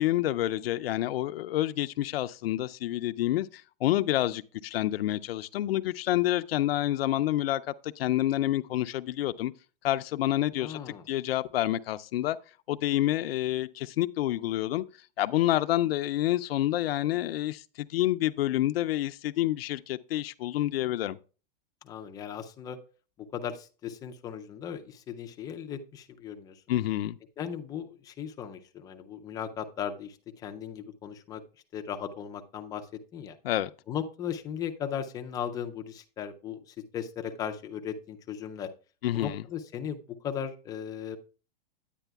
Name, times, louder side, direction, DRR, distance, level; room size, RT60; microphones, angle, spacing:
voice 1, 0.0-9.5 9.8-10.8 11.1-12.4 12.7-14.8 15.2-21.2 26.7-27.2 33.4-33.7 39.0-39.4, left 14 dB, 80° left, 0.5 m, -28 dB
voice 2, 10.5-11.0 21.8-22.8 23.2-26.6 27.4-31.4 31.7-32.9 33.1-33.4 33.9-38.7 39.1-41.2, left 8 dB, 15° left, 0.3 m, -37 dB
9.8 x 9.1 x 2.3 m
hypercardioid pair, 145°, 29 cm